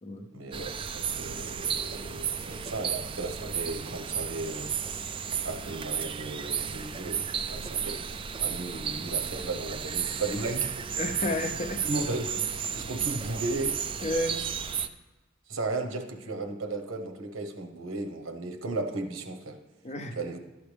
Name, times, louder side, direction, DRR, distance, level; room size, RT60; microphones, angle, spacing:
voice 1, 0.3-4.7 5.4-8.0 8.4-10.9 11.8-13.7 14.4-14.5 15.5-19.6 20.1-20.4, right 2 dB, 75° right, 6 dB, 1.1 m, -35 dB
sound 1, 0.5-14.9, right 7 dB, 25° right, 0.4 m, -33 dB
voice 2, 11.0-11.8 14.0-14.4 19.8-20.4, left 1 dB, 35° left, 6 dB, 0.7 m, -31 dB
12.5 x 7.9 x 3.4 m, 1.2 s
head